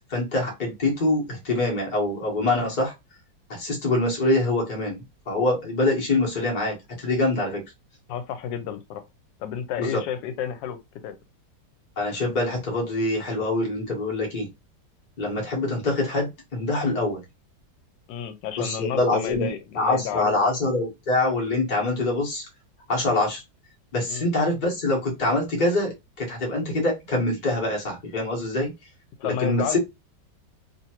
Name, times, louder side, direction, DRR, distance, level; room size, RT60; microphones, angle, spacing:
voice 1, 0.1-2.9 3.5-7.6 9.8-10.0 12.0-14.5 15.2-17.2 18.6-19.5 19.7-22.4 22.9-23.4 23.9-28.7 29.2-29.8, left 2 dB, 30° left, 1.0 m, -25 dB
voice 2, 8.1-9.0 9.4-10.8 11.0-11.1 18.1-20.4 24.1-24.3 29.2-29.8, left 8 dB, 85° left, 1.2 m, -31 dB
2.8 x 2.5 x 2.8 m
omnidirectional pair, 1.9 m